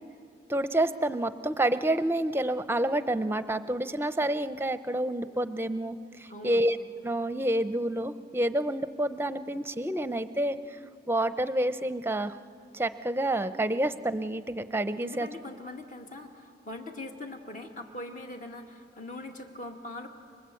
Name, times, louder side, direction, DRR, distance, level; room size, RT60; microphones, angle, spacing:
voice 1, 0.5-6.8 7.0-10.6 11.1-12.3 12.7-15.3, right 1 dB, 15° right, 12 dB, 0.7 m, -28 dB
voice 2, 6.3-6.7 15.0-20.1, left 2 dB, 50° left, 3 dB, 2.4 m, -41 dB
29.0 x 24.0 x 8.4 m, 2.7 s
head